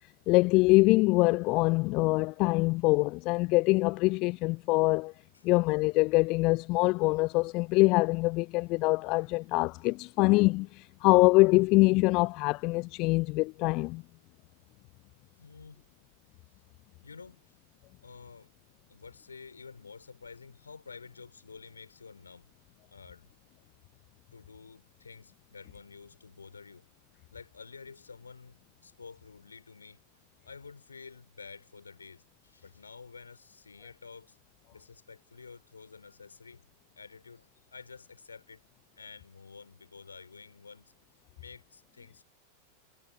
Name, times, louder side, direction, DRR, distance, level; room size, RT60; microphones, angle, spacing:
voice 1, 0.3-5.1 5.4-14.0, left 24 dB, 40° left, 0.4 m, -24 dB
voice 2, 15.4-15.9 17.0-17.5 18.0-18.5 18.9-22.5 22.9-23.3 24.3-26.9 27.3-30.0 30.5-34.4 34.7-36.7 36.9-38.6 39.0-40.9 41.3-42.2, left 5 dB, 75° left, 5.4 m, -50 dB
figure-of-eight pair, 90°, 0 cm